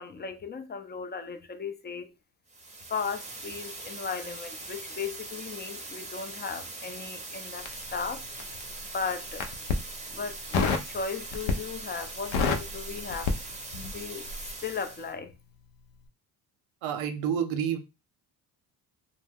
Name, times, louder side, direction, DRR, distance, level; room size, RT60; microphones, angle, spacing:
voice 1, 0.0-2.1 2.9-8.2 8.9-9.5 10.1-13.3 13.9-14.3 14.6-15.3, left 5 dB, 25° left, 0.3 m, -36 dB
sound 1, 2.5-15.1, right 2 dB, 15° right, 0.6 m, -41 dB
Crackle, 7.6-8.7 9.3-9.9 10.5-10.9 11.3-11.8 12.1-14.0 14.3-14.5, left 4 dB, 80° left, 0.6 m, -28 dB
voice 2, 16.8-17.8, right 8 dB, 75° right, 0.7 m, -29 dB
2.2 x 2.1 x 3.4 m
supercardioid pair, 55°, 48 cm